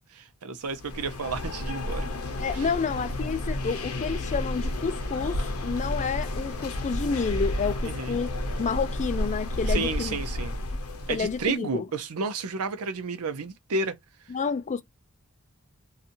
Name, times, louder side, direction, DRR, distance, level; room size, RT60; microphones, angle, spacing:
voice 1, 0.1-2.1 2.5-2.7 7.8-8.2 9.7-10.6 11.1-14.0, right 4 dB, 90° right, 0.6 m, -31 dB
sound 1, 0.7-11.5, left 1 dB, 70° left, 0.7 m, -31 dB
voice 2, 2.4-8.3 8.6-10.2 11.1-11.9 14.3-14.8, left 5 dB, 35° left, 0.4 m, -29 dB
2.7 x 2.4 x 2.6 m
head